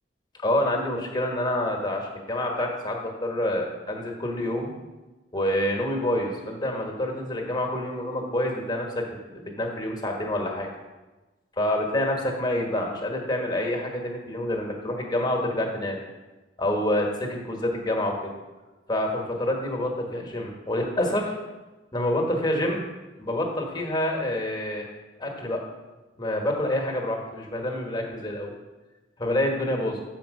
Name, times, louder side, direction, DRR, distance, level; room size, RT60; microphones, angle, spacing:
voice 1, 0.4-4.7 5.3-10.7 11.6-16.0 16.6-18.3 18.9-21.4 21.9-22.8 23.2-24.8 25.2-25.6 26.2-28.5 29.2-30.0, left 1 dB, 25° left, 1 dB, 1.2 m, -27 dB
7.2 x 4.5 x 6.3 m, 1.2 s
head